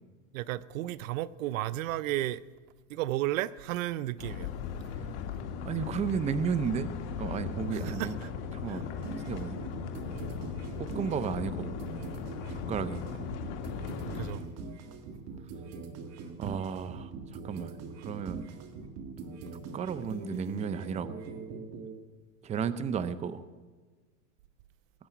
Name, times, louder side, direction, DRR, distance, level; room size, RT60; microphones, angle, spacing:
voice 1, 0.3-2.4 2.9-4.5 7.7-8.3 8.7-8.8 14.1-14.4 16.4-16.5, right 15 dB, 80° right, 0.7 m, -33 dB
sound 1, 4.2-14.3, left 7 dB, 60° left, 1.9 m, -38 dB
voice 2, 5.7-6.9 7.2-8.2 8.5-8.8 9.3-9.6 10.8-11.7 12.7-13.0 16.4-17.1 17.4-17.7 18.0-18.5 19.7-21.2 22.4-23.4, right 7 dB, 15° right, 0.6 m, -33 dB
sound 2, 9.0-21.9, right 4 dB, 40° right, 1.8 m, -42 dB
20.0 x 8.6 x 8.2 m
supercardioid pair, 135°, 39 cm